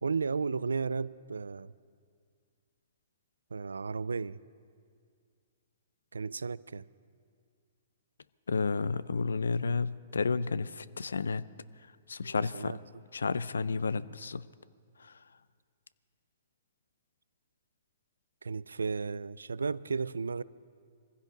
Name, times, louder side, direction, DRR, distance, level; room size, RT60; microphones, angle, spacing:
voice 1, 0.0-1.7 3.5-4.4 6.1-6.9 12.2-12.8 18.4-20.4, right 5 dB, 90° right, 20 dB, 0.3 m, -34 dB
voice 2, 8.5-11.4 12.1-12.7 13.1-14.5 15.0-15.1, left 4 dB, 85° left, 18 dB, 0.5 m, -31 dB
23.0 x 15.5 x 3.9 m, 2.1 s
hypercardioid pair, 125°, 0 cm